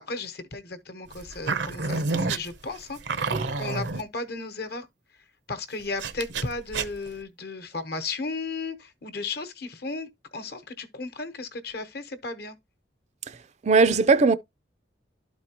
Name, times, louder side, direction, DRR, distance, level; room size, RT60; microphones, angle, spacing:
voice 1, 0.0-4.9 5.5-12.6, left 3 dB, 60° left, 1.0 m, -35 dB
sound 1, 1.1-4.0 6.0-7.2, right 3 dB, 75° right, 0.7 m, -29 dB
voice 2, 13.6-14.3, right 4 dB, 40° right, 0.4 m, -19 dB
12.0 x 4.3 x 2.9 m
head